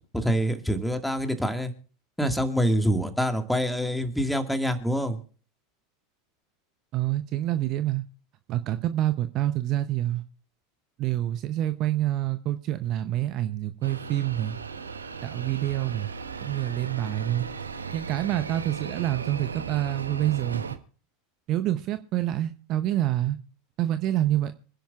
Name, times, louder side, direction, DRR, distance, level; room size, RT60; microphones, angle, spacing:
voice 1, 0.1-1.7 2.2-5.2, equal, 5° left, 1.9 m, -26 dB
voice 2, 6.9-8.0 8.5-10.2 11.0-14.6 15.2-16.1 16.4-17.5 17.9-20.7 21.5-23.4 23.8-24.5, right 13 dB, 45° right, 0.7 m, -27 dB
sound 1, 13.8-20.8, right 5 dB, 85° right, 1.0 m, -37 dB
26.0 x 10.5 x 2.4 m
figure-of-eight pair, 85°, 0 cm